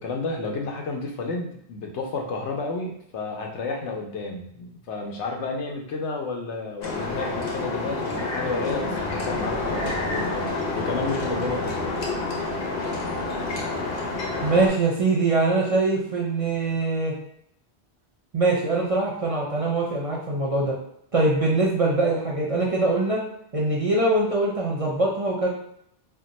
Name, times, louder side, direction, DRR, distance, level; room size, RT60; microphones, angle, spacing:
voice 1, 0.0-12.0, left 3 dB, 90° left, 1 dB, 0.9 m, -31 dB
sound 1, 6.8-14.7, left 2 dB, 65° left, 0.9 m, -28 dB
voice 2, 14.4-17.1 18.3-20.7 21.1-23.2 23.5-25.5, right 2 dB, 45° right, -4 dB, 0.5 m, -23 dB
2.5 x 2.2 x 3.9 m, 0.73 s
omnidirectional pair, 1.1 m